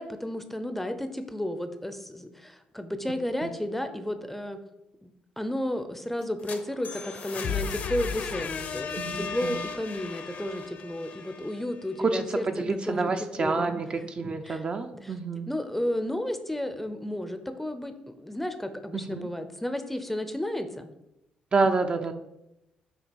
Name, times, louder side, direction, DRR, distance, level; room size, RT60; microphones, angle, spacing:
voice 1, 0.0-4.6 5.0-13.1 13.4-13.7 14.0-14.1 14.4-15.2 15.5-20.9, left 1 dB, 5° left, 8 dB, 0.6 m, -33 dB
sound 1, 6.2-12.1, left 6 dB, 65° left, 0.9 m, -35 dB
voice 2, 9.0-9.6 12.0-15.5 18.9-19.3 21.5-22.1, right 4 dB, 35° right, 6 dB, 0.6 m, -28 dB
7.2 x 2.8 x 5.2 m, 0.88 s
cardioid pair, 85°, 3 cm